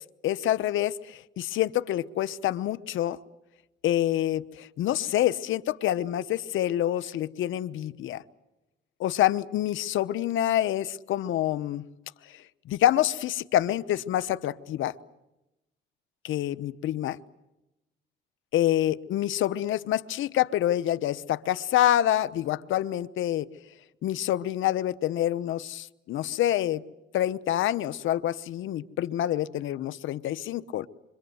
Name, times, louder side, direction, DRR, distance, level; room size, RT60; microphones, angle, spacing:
voice 1, 0.2-3.2 3.8-8.2 9.0-11.8 12.7-14.9 16.2-17.2 18.5-23.5 24.0-26.8 27.1-30.9, left 12 dB, 80° left, 14 dB, 1.0 m, -27 dB
26.5 x 25.0 x 8.0 m, 0.93 s
cardioid pair, 90°, 20 cm